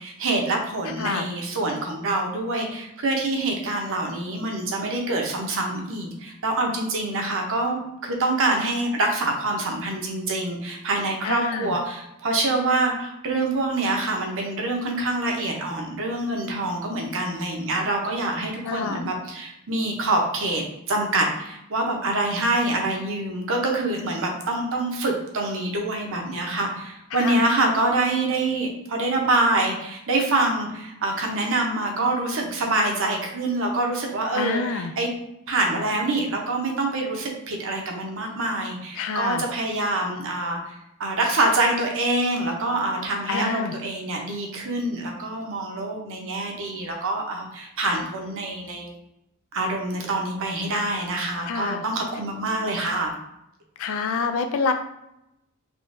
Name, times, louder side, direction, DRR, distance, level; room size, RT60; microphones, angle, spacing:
voice 1, 0.0-35.1 35.5-40.7 41.0-48.9 49.5-53.1, right 2 dB, 65° right, 1 dB, 0.7 m, -25 dB
voice 2, 11.2-11.8 18.6-19.1 27.1-27.4 34.3-34.9 39.0-39.4 43.3-43.7 51.5-51.8 53.8-54.7, left 5 dB, 65° left, 7 dB, 0.3 m, -27 dB
3.7 x 2.9 x 2.5 m, 0.84 s
head